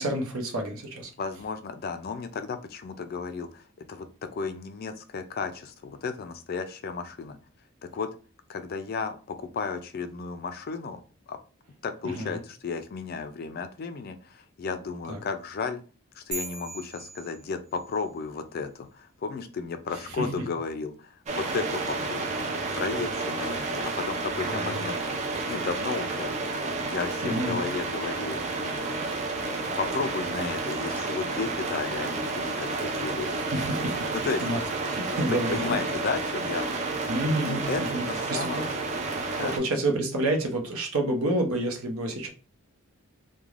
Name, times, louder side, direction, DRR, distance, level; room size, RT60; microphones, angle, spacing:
voice 1, 0.0-1.1 12.0-12.4 15.1-15.2 20.0-20.3 24.5-24.9 27.2-27.6 33.5-34.1 34.4-34.6 34.9-35.6 37.1-38.7 39.4-42.3, right 1 dB, 80° right, 3 dB, 0.7 m, -29 dB
voice 2, 1.2-3.6 3.9-7.4 7.8-8.1 8.5-11.0 11.3-11.4 11.8-15.8 16.2-22.4 22.7-25.0 25.5-26.3 26.7-28.9 29.8-33.4 34.1-34.4 35.1-36.6 37.5-38.7 39.3-39.6, left 5 dB, 45° left, 9 dB, 0.3 m, -33 dB
sound 1, 16.3-18.0, right 2 dB, 50° right, 1.0 m, -39 dB
sound 2, 21.3-39.6, right 3 dB, 30° right, 0.4 m, -31 dB
3.1 x 2.1 x 2.4 m, 0.36 s
head